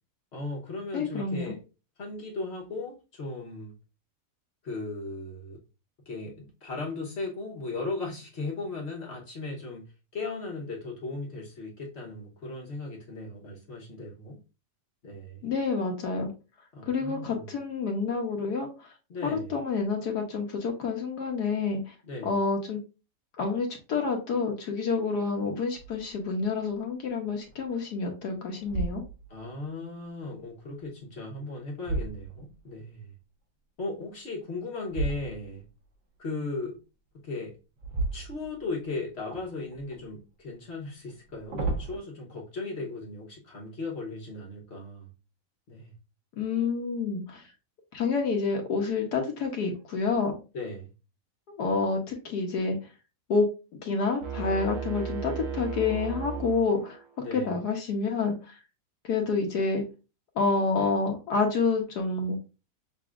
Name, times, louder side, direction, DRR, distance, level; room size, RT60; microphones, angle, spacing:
voice 1, 0.3-1.6 2.0-3.7 4.6-5.6 6.1-9.9 10.1-14.4 15.0-15.5 16.7-17.5 19.1-19.5 22.0-22.3 29.3-33.1 33.8-35.6 36.2-36.8 37.2-37.5 38.1-45.1 45.7-45.9 50.5-50.9 57.2-57.6, left 3 dB, 45° left, 1.0 m, -37 dB
voice 2, 0.9-1.6 15.4-16.3 16.8-18.9 19.2-21.9 22.2-22.8 23.4-29.0 46.4-47.5 47.9-50.4 51.6-52.8 53.3-53.5 53.8-57.0 57.3-58.6 59.0-59.8 60.4-62.4, left 4 dB, 70° left, 1.3 m, -28 dB
sound 1, 25.7-26.2 26.7-26.8 27.4-28.0 28.6-29.5 31.1-32.8 34.9-35.7 37.8-38.9 39.3-40.0 41.1-42.0, right 2 dB, 45° right, 1.5 m, -34 dB
sound 2, 54.2-57.2, right 7 dB, 65° right, 1.2 m, -35 dB
6.8 x 2.6 x 2.4 m
omnidirectional pair, 1.9 m